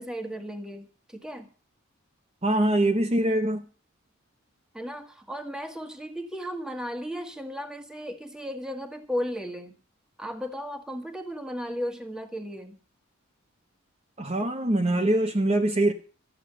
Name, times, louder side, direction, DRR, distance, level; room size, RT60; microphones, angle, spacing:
voice 1, 0.0-1.5 4.7-9.7 10.2-12.8, equal, 5° right, 1.6 m, -35 dB
voice 2, 2.4-3.6 14.2-15.9, right 1 dB, 30° right, 0.9 m, -23 dB
14.0 x 8.3 x 7.8 m
head